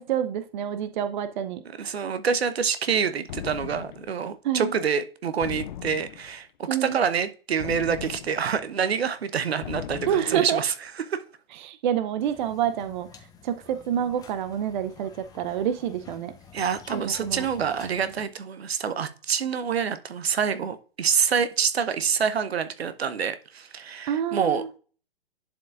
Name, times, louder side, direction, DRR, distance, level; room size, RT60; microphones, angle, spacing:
voice 1, 0.0-1.9 4.4-4.7 6.7-7.0 10.1-10.6 11.6-13.1 13.4-16.3 16.9-17.5 24.1-24.7, right 9 dB, 50° right, 0.6 m, -27 dB
voice 2, 1.6-11.2 16.5-24.8, right 7 dB, 80° right, 0.9 m, -27 dB
sound 1, 3.3-4.2 5.4-6.4 7.6-8.6 9.6-10.5, left 11 dB, 50° left, 0.6 m, -38 dB
sound 2, 12.2-18.3, left 6 dB, 10° left, 0.8 m, -50 dB
11.0 x 4.6 x 2.5 m
hypercardioid pair, 120°, 31 cm